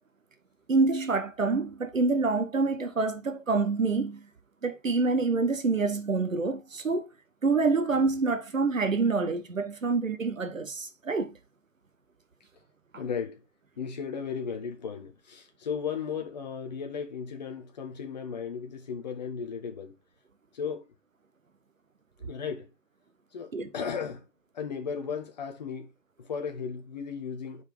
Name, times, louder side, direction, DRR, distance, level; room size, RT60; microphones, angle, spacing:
voice 1, 0.7-4.3 4.6-7.1 7.4-11.4 23.5-23.7, right 4 dB, 90° right, 1.2 m, -27 dB
voice 2, 13.0-13.4 13.8-20.0 20.5-20.9 22.2-22.7 23.3-24.3 24.5-25.9 26.2-27.6, left 6 dB, 35° left, 1.3 m, -35 dB
5.2 x 4.7 x 5.0 m
figure-of-eight pair, 155°, 38 cm